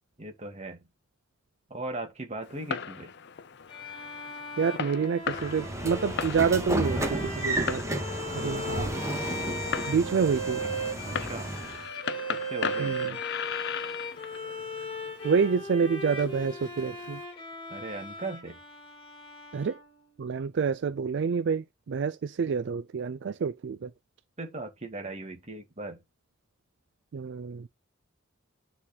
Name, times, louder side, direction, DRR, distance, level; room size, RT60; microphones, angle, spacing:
voice 1, 0.2-0.9 1.7-3.1 8.4-8.7 11.0-11.5 12.3-13.0 17.7-18.6 24.4-26.0, right 2 dB, 35° right, 1.9 m, -38 dB
Fireworks, 2.4-17.2, left 7 dB, 60° left, 0.6 m, -39 dB
Bowed string instrument, 3.7-20.2, equal, 25° left, 2.5 m, -38 dB
voice 2, 4.6-7.8 8.3-8.9 9.9-10.6 12.8-13.2 15.2-17.2 19.5-19.8 20.2-23.9 27.1-27.7, right 6 dB, 60° right, 0.4 m, -28 dB
Train / Sliding door, 5.3-11.8, right 1 dB, 15° right, 1.7 m, -33 dB
9.7 x 4.0 x 4.1 m
head